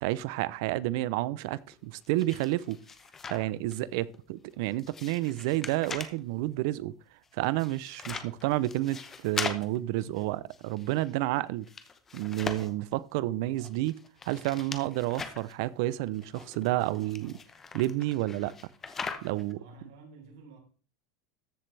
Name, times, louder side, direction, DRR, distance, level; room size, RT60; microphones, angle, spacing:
voice 1, 0.0-2.8 3.3-6.9 7.4-11.7 12.1-14.0 14.2-17.4 17.7-18.5 19.2-19.6, right 16 dB, 55° right, 0.5 m, -30 dB
sound 1, 1.7-3.8 4.1-6.2 7.2-11.2 11.5-12.9 13.6-15.5 16.1-19.5, left 5 dB, 15° left, 0.8 m, -41 dB
voice 2, 3.6-3.9 19.5-20.6, right 3 dB, 80° right, 3.8 m, -52 dB
13.5 x 7.3 x 3.3 m
supercardioid pair, 170°, 2 cm